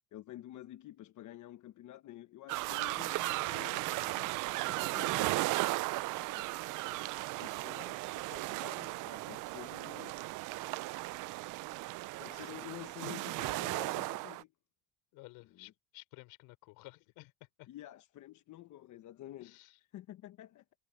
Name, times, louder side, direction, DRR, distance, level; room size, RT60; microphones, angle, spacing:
voice 1, 0.1-6.5 7.2-10.2 12.2-14.5 15.4-15.7 17.7-19.6 19.9-20.6, left 15 dB, 55° left, 1.2 m, -50 dB
sound 1, 2.5-14.4, right 21 dB, 60° right, 0.5 m, -36 dB
voice 2, 11.3-11.6 12.3-12.5 15.1-17.3 17.6-17.7 19.4-19.8, left 22 dB, 80° left, 4.3 m, -55 dB
cardioid pair, 115°, 36 cm